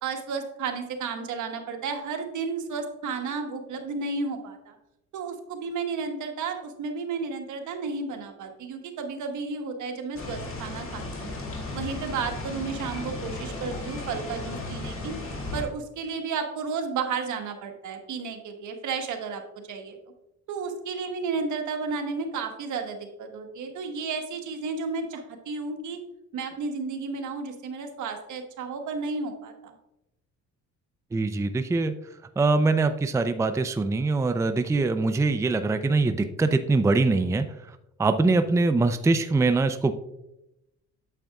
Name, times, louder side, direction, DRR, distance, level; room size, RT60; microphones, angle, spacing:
voice 1, 0.0-4.7 5.1-11.3 11.7-15.1 15.5-19.4 19.7-20.0 20.5-26.0 26.3-29.7, right 4 dB, 75° right, 4 dB, 1.3 m, -32 dB
sound 1, 10.1-15.6, left 2 dB, 45° left, 2.1 m, -35 dB
voice 2, 31.1-31.9 32.4-37.5 38.0-39.9, right 3 dB, 10° right, 9 dB, 0.4 m, -23 dB
9.0 x 7.4 x 2.3 m, 0.88 s
cardioid pair, 90°, 30 cm